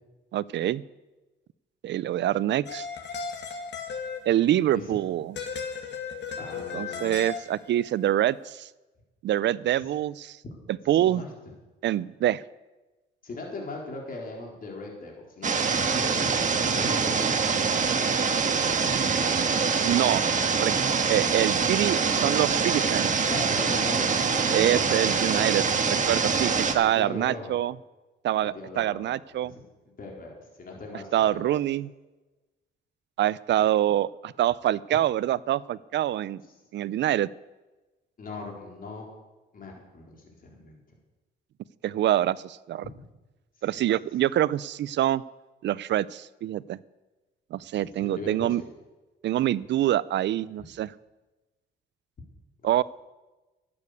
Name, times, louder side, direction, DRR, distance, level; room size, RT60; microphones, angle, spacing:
voice 1, 0.3-0.8 1.8-2.9 4.3-5.3 6.7-8.7 9.2-10.4 10.9-11.2 11.8-12.4 19.8-20.3 20.6-20.8 21.1-23.1 24.5-27.7 28.2-29.5 31.1-31.9 33.2-36.4 36.7-37.3 41.8-42.8 43.6-45.2 45.6-46.8 47.5-48.6 49.2-50.9 52.6-52.8, right 12 dB, 65° right, 20 dB, 0.5 m, -25 dB
sound 1, 2.7-4.7 5.4-7.9, left 5 dB, 65° left, 1.9 m, -36 dB
voice 2, 6.4-7.2 10.4-10.6 10.9-11.3 13.2-16.3 16.6-19.4 20.2-20.5 23.3-25.6 26.3-27.5 28.4-29.1 29.4-29.6 30.0-30.3 30.6-31.6 38.2-39.1 39.5-40.8 43.7-43.8 47.8-48.7 52.6-52.8, left 2 dB, 45° left, -1 dB, 4.0 m, -40 dB
sound 2, 15.4-26.7, right 5 dB, 40° right, 1.5 m, -24 dB
12.0 x 8.7 x 8.4 m, 1.1 s
cardioid pair, 90°, 20 cm